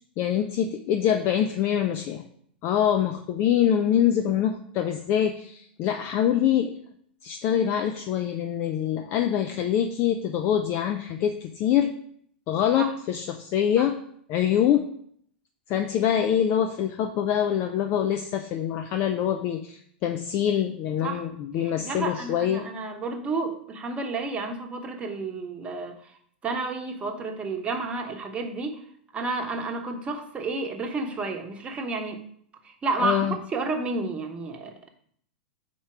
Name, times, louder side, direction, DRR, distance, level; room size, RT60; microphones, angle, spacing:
voice 1, 0.2-2.2 2.6-6.7 7.2-11.9 12.5-14.0 14.3-14.8 15.7-22.7 33.0-33.4, left 9 dB, 40° left, 6 dB, 0.5 m, -24 dB
voice 2, 21.6-26.1 26.4-28.8 29.1-32.2 32.6-34.9, right 3 dB, 20° right, 4 dB, 1.0 m, -31 dB
4.5 x 4.4 x 5.9 m, 0.65 s
hypercardioid pair, 100°, 6 cm